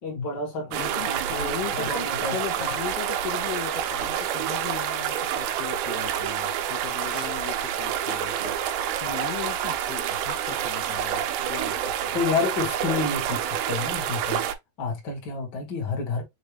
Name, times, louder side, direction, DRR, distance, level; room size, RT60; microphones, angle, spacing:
voice 1, 0.0-2.7 12.1-14.4 14.8-16.2, left 4 dB, 55° left, 1.2 m, -30 dB
sound 1, 0.7-14.6, right 9 dB, 90° right, 2.8 m, -28 dB
voice 2, 0.8-2.1 2.3-8.4 9.0-12.2, left 12 dB, 85° left, 1.9 m, -37 dB
sound 2, 3.7-10.3, right 3 dB, 50° right, 0.4 m, -47 dB
6.5 x 2.4 x 3.3 m
omnidirectional pair, 4.7 m